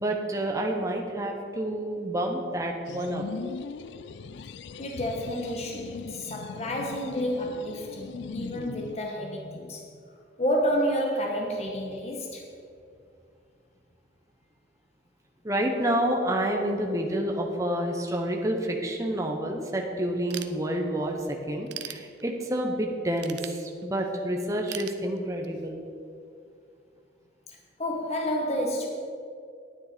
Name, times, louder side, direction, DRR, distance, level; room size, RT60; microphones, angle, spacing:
voice 1, 0.0-3.2 15.4-25.8, right 1 dB, 15° right, 1 dB, 0.9 m, -29 dB
sound 1, 2.9-9.0, left 5 dB, 70° left, 0.4 m, -40 dB
voice 2, 4.8-9.8 10.4-12.5 27.5-28.9, equal, 35° left, 0 dB, 1.1 m, -30 dB
Ratchet pawl / Tools, 20.3-21.1 21.5-22.6 23.2-24.1 24.7-25.7, right 11 dB, 65° right, 0.6 m, -40 dB
9.9 x 9.1 x 5.1 m, 2.4 s
head